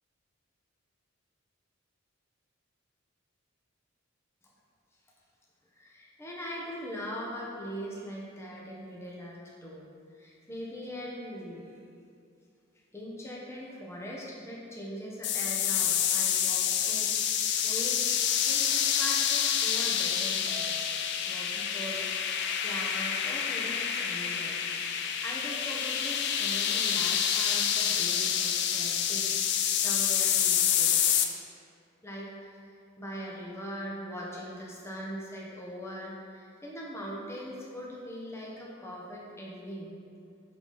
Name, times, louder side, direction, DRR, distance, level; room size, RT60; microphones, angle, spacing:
voice 1, 5.7-9.9 10.2-11.7 12.9-20.9 21.3-31.0 32.0-39.9, equal, 15° left, -4 dB, 1.0 m, -41 dB
sound 1, 15.2-31.3, left 8 dB, 55° left, 0.4 m, -28 dB
Harp, 20.5-22.9, left 1 dB, 30° right, 1.0 m, -49 dB
7.9 x 4.2 x 4.0 m, 2.5 s
head